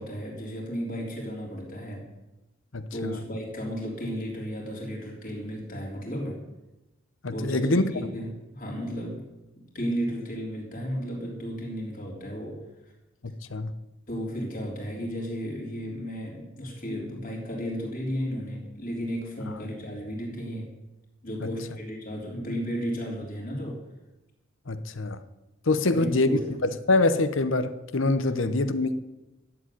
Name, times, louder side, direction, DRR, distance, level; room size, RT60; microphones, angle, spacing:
voice 1, 0.0-2.1 2.9-6.4 7.3-9.2 9.6-12.6 14.1-20.7 21.2-23.8 25.8-26.4 28.4-28.6, equal, 40° left, 3.8 m, -34 dB
voice 2, 2.7-3.2 7.2-7.8 13.2-13.7 24.7-25.2 25.7-26.3 26.6-29.0, left 2 dB, 65° left, 0.9 m, -25 dB
12.5 x 7.8 x 9.4 m
head